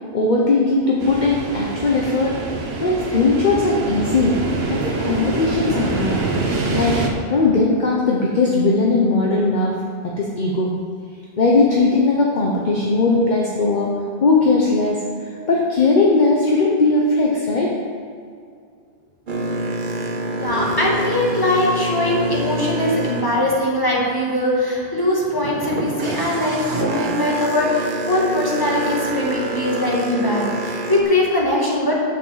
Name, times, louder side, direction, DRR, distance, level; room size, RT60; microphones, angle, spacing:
voice 1, 0.1-2.4 2.8-4.4 4.7-6.2 6.7-7.0 7.3-9.7 10.0-10.7 11.4-14.0 14.2-17.8, left 3 dB, 50° left, -2 dB, 1.1 m, -18 dB
sound 1, 1.0-7.1, right 3 dB, 85° right, 1.3 m, -25 dB
Boat Water vehicle, 19.3-24.3 24.7-31.0, right 2 dB, 55° right, 1.1 m, -26 dB
voice 2, 20.4-31.9, left 1 dB, 20° left, -4 dB, 2.1 m, -21 dB
7.6 x 6.6 x 7.3 m, 2.3 s
omnidirectional pair, 1.1 m